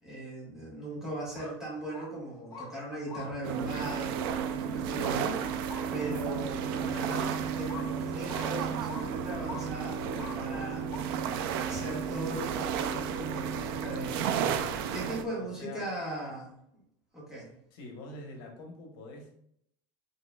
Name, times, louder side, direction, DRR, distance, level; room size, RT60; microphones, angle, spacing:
voice 1, 0.0-10.8 11.5-16.5 17.1-17.5, right 1 dB, 5° right, -7 dB, 1.6 m, -39 dB
sound 1, 1.2-1.5 1.9-2.1 2.5-2.7 3.1-3.3 3.8-4.0 5.0-5.2 5.7-5.9 6.3-6.4 7.1-7.3 7.7-7.9 8.3-8.5 8.9-9.0 9.5-9.6 10.2-10.4 10.9-11.0, left 4 dB, 35° left, 1.3 m, -43 dB
sound 2, 3.4-15.2, right 7 dB, 85° right, 0.4 m, -33 dB
voice 2, 15.1-15.9 17.7-19.4, left 2 dB, 80° left, 1 dB, 1.2 m, -45 dB
5.9 x 3.2 x 2.3 m, 0.70 s
cardioid pair, 170°, 12 cm